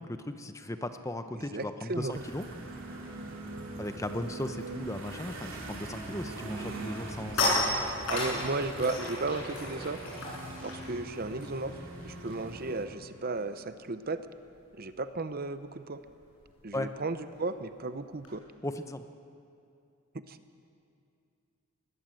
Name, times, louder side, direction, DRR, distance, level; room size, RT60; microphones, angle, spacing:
voice 1, 0.0-2.4 3.8-7.9 16.7-16.9 18.6-19.0, left 1 dB, 15° left, 9 dB, 0.8 m, -37 dB
voice 2, 1.5-2.1 8.1-10.0 10.6-11.8 12.0-14.2 14.7-16.0 16.6-18.4 20.3-20.4, right 3 dB, 45° right, 11 dB, 0.8 m, -34 dB
sound 1, 2.1-12.9, right 1 dB, 60° right, 3.3 m, -44 dB
sound 2, 2.2-14.1, right 2 dB, 85° right, 2.9 m, -46 dB
sound 3, 7.0-12.6 12.8-13.1 13.3-18.4, left 2 dB, 60° left, 7.7 m, -36 dB
21.0 x 19.0 x 7.8 m, 2.5 s
head